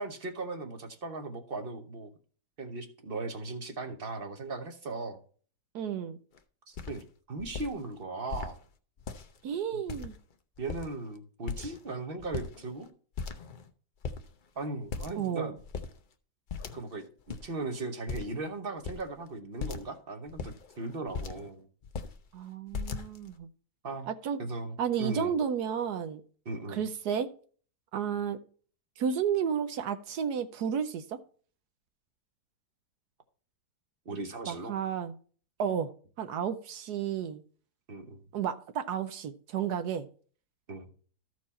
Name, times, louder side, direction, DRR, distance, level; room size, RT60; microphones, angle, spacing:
voice 1, 0.0-2.1 2.6-5.2 6.7-8.6 10.6-12.9 14.6-15.6 16.7-21.7 23.8-24.1 24.4-25.4 26.4-26.8 34.0-34.8 37.9-38.2 40.7-40.9, right 3 dB, 40° right, 1.1 m, -38 dB
voice 2, 5.7-6.2 9.4-10.1 15.2-15.5 22.3-23.5 24.1-24.4 24.8-26.2 26.7-27.3 27.9-28.4 29.0-31.2 34.5-35.2 35.6-35.9 36.2-37.4 38.3-40.1, right 8 dB, 75° right, 1.2 m, -32 dB
sound 1, 6.3-6.4 6.8-7.0 7.4-7.7 8.3-8.5 9.0-9.4 9.9-10.3 10.6-11.1 11.5-11.9 12.2-12.9 13.2-13.7 14.0-14.2 14.9-15.3 15.6-15.9 16.5-17.0 17.3-17.4 18.1-18.4 18.8-19.1 19.6-19.9 20.3-21.5 21.8-22.2 22.7-23.3, left 5 dB, 55° left, 0.5 m, -38 dB
13.5 x 4.6 x 4.2 m
omnidirectional pair, 1.8 m